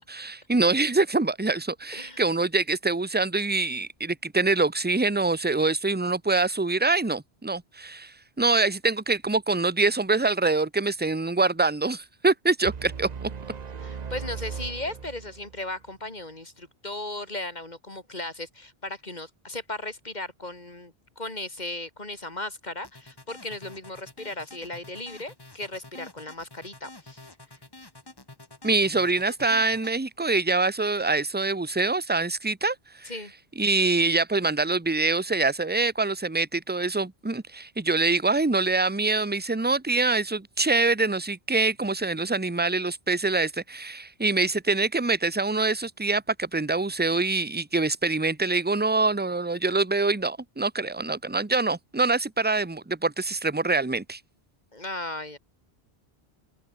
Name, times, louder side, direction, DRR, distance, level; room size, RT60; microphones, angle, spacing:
voice 1, 0.0-13.3 28.6-33.1 33.6-54.2, right 3 dB, 10° right, 0.9 m, -25 dB
sound 1, 12.6-15.7, right 6 dB, 45° right, 0.9 m, -37 dB
voice 2, 13.8-27.3 33.1-33.3 54.7-55.4, left 2 dB, 45° left, 3.6 m, -36 dB
sound 2, 22.8-30.0, left 2 dB, 25° left, 1.6 m, -47 dB
open air
omnidirectional pair, 1.1 m